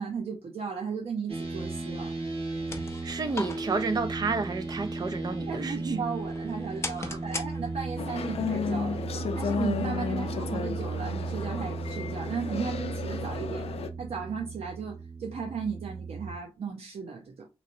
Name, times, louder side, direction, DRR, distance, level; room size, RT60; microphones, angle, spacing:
voice 1, 0.0-2.1 5.3-9.0 9.3-13.6 14.0-17.5, right 5 dB, 85° right, 0.6 m, -35 dB
sound 1, 1.3-16.3, right 3 dB, 70° right, 1.3 m, -36 dB
sound 2, 2.4-8.1, left 3 dB, 25° left, 0.5 m, -41 dB
voice 2, 3.0-6.0 7.0-7.2, right 4 dB, 40° right, 0.5 m, -31 dB
sound 3, 8.0-13.9, left 6 dB, 80° left, 0.5 m, -33 dB
3.9 x 3.0 x 2.6 m
wide cardioid pair, 160°, 10 cm